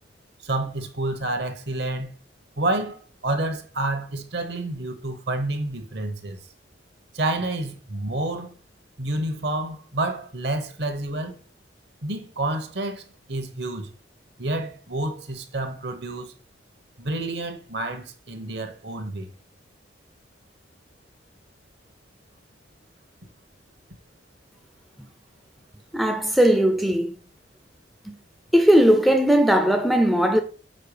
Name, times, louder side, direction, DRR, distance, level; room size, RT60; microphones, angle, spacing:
voice 1, 0.4-2.1 2.6-6.4 7.1-8.5 9.0-11.4 12.0-13.0 13.3-13.9 14.4-16.3 17.0-19.3, right 2 dB, 60° right, 1.2 m, -29 dB
voice 2, 25.9-27.2 28.1-28.2 28.5-30.4, equal, ahead, 0.5 m, -18 dB
6.6 x 4.7 x 4.9 m
head